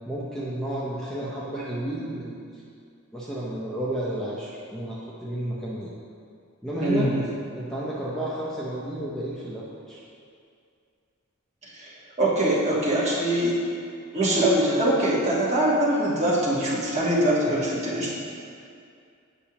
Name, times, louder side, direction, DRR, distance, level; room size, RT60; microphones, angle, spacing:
voice 1, 0.0-2.5 3.1-5.9 6.6-7.1 7.5-10.0 17.4-17.5, right 1 dB, 5° left, -8 dB, 0.6 m, -32 dB
voice 2, 6.8-7.2 11.6-11.9 12.2-13.6 14.1-18.1, right 1 dB, 30° right, -7 dB, 1.3 m, -23 dB
8.5 x 5.4 x 2.9 m, 2.4 s
head